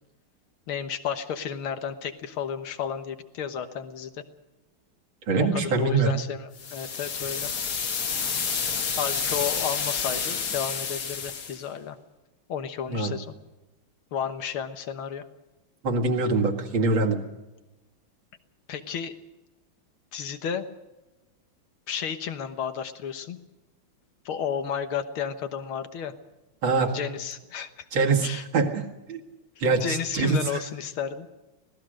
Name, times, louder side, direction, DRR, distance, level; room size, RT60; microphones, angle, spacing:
voice 1, 0.7-4.2 5.4-7.5 9.0-12.0 12.5-13.3 14.1-15.3 18.7-19.1 20.1-20.7 21.9-23.4 24.3-26.1 26.9-28.5 29.8-31.3, left 8 dB, 90° left, 9 dB, 2.1 m, -32 dB
voice 2, 5.3-6.1 12.9-13.1 15.8-17.2 26.6-27.0 27.9-28.3 28.5-29.2 29.6-30.6, right 3 dB, 70° right, 2 dB, 2.7 m, -24 dB
sound 1, 6.6-11.6, left 6 dB, 55° left, 1.8 m, -29 dB
25.0 x 17.5 x 6.4 m, 1.1 s
omnidirectional pair, 2.2 m